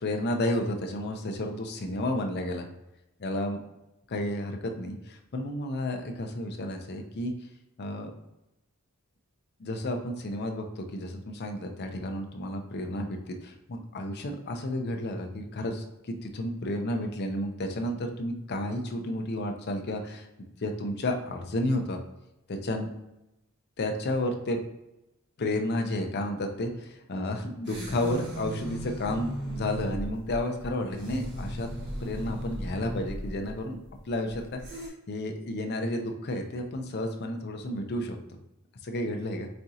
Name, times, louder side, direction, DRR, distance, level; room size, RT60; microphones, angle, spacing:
voice 1, 0.0-2.7 3.2-3.6 4.1-7.3 7.8-8.1 9.6-20.3 20.6-22.0 22.5-22.9 23.8-24.6 25.4-31.7 32.0-33.8 34.1-38.2 38.8-39.5, left 1 dB, 50° left, 4 dB, 0.5 m, -31 dB
sound 1, 27.6-34.9, right 1 dB, 55° right, 1.3 m, -37 dB
4.3 x 3.6 x 2.7 m, 0.92 s
head